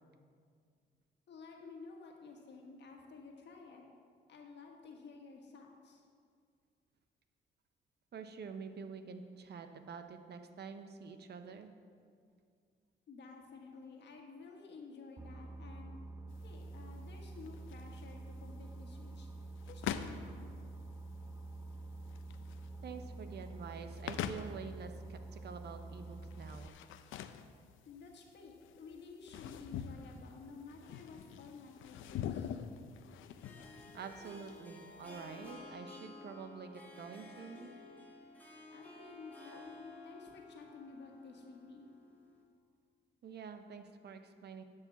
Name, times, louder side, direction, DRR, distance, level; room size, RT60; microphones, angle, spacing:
voice 1, 1.3-3.8 4.3-6.1 13.1-16.0 16.4-19.3 19.6-20.5 27.8-32.5 38.7-41.9, left 4 dB, 65° left, 1 dB, 1.6 m, -52 dB
voice 2, 8.1-11.7 22.8-26.7 33.9-37.7 43.2-44.6, right 5 dB, 55° right, 8 dB, 0.8 m, -47 dB
Boat Water vehicle, 15.2-26.7, right 2 dB, 15° right, 0.4 m, -48 dB
sound 1, 16.3-35.5, left 9 dB, 80° left, 0.5 m, -46 dB
Harp, 32.0-42.4, left 2 dB, 10° left, 1.9 m, -54 dB
10.5 x 4.9 x 7.1 m, 2.2 s
cardioid pair, 90°, 20 cm